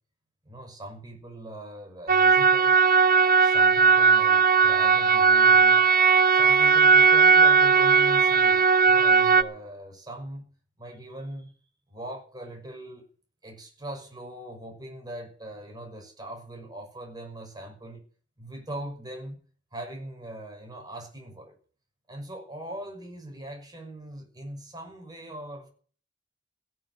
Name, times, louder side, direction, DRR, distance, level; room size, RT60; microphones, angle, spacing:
voice 1, 0.5-2.8 3.4-5.8 6.3-10.5 10.8-11.5 11.9-13.1 13.4-18.0 18.4-19.4 19.7-21.6 22.1-25.7, right 1 dB, 20° right, 5.9 m, -40 dB
sound 1, 2.1-9.4, right 5 dB, 45° right, 1.1 m, -18 dB
16.5 x 7.9 x 9.6 m
head